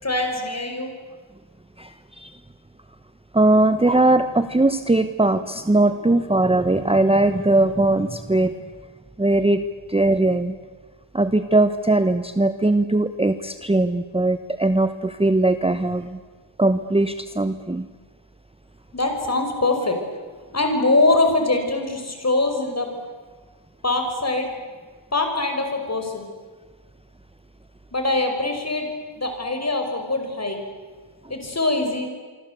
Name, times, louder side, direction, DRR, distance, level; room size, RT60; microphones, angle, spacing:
voice 1, 0.0-0.9 18.9-20.0 20.5-22.9 23.8-24.5 25.1-26.2 27.9-28.9 29.2-30.6 31.3-32.1, left 2 dB, 30° left, 5 dB, 5.6 m, -23 dB
voice 2, 1.8-2.3 3.3-8.5 9.2-9.6 9.9-10.6 11.1-16.2 16.6-17.9, right 2 dB, 10° right, 10 dB, 1.0 m, -20 dB
26.5 x 24.5 x 8.3 m, 1.4 s
wide cardioid pair, 95°, 49 cm